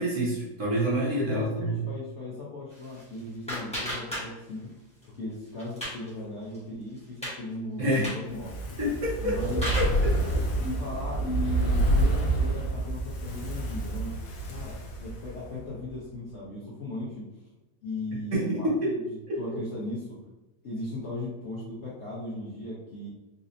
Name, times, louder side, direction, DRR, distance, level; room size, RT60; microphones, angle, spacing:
voice 1, 0.0-1.8 7.8-8.1 8.8-9.9 18.3-18.9 19.3-19.4, right 1 dB, 50° right, -6 dB, 1.2 m, -27 dB
voice 2, 1.2-4.7 5.0-8.6 9.2-9.6 10.6-14.2 14.5-17.3 17.8-19.0 19.4-20.2 20.6-23.1, left 2 dB, 55° left, -7 dB, 0.9 m, -37 dB
sound 1, 2.7-4.7 5.0-6.1 6.5-6.6 7.0-7.4 7.9-8.3 9.1-10.0, equal, 5° left, 0.8 m, -35 dB
Fire, 8.3-15.6 15.9-16.0, right 1 dB, 80° left, 1.3 m, -28 dB
4.1 x 2.7 x 2.5 m, 1.0 s
omnidirectional pair, 1.8 m